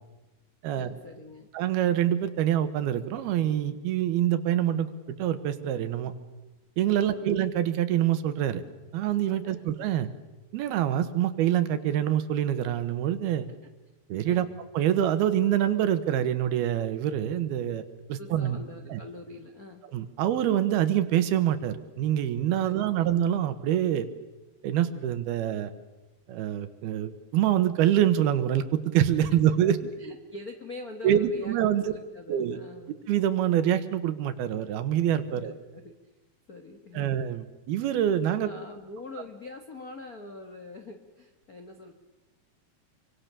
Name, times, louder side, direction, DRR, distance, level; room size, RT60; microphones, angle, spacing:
voice 1, 0.8-1.5 6.9-7.3 9.4-9.7 14.2-14.4 18.2-19.9 22.6-23.2 29.3-29.4 30.0-32.9 35.3-36.1 36.5-37.1 38.3-41.9, left 2 dB, 60° left, 4 dB, 0.9 m, -44 dB
voice 2, 1.5-6.1 6.8-8.6 8.9-10.1 10.5-13.5 14.1-14.5 14.7-17.8 18.1-18.6 18.9-19.0 19.9-24.1 24.6-25.7 26.3-29.9 31.0-31.8 32.3-32.6 33.1-35.5 36.9-38.5, right 11 dB, 90° right, 11 dB, 3.3 m, -25 dB
27.0 x 24.5 x 6.9 m, 1.1 s
omnidirectional pair, 4.3 m